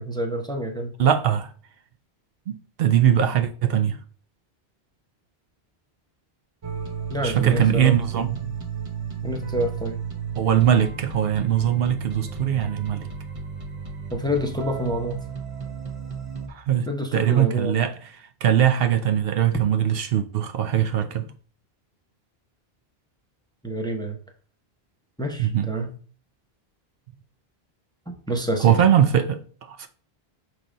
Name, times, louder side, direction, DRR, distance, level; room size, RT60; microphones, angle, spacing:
voice 1, 0.0-0.9 7.1-8.0 9.2-10.0 14.1-15.2 16.9-17.8 23.6-24.2 25.2-25.9 28.1-28.8, equal, 5° left, 0.7 m, -28 dB
voice 2, 1.0-1.5 2.5-4.0 7.2-8.5 10.4-13.1 16.5-21.3 25.4-25.7 28.6-29.9, right 9 dB, 70° right, 0.8 m, -21 dB
sound 1, 6.6-16.5, right 6 dB, 35° right, 0.7 m, -33 dB
5.8 x 3.3 x 5.0 m
omnidirectional pair, 1.1 m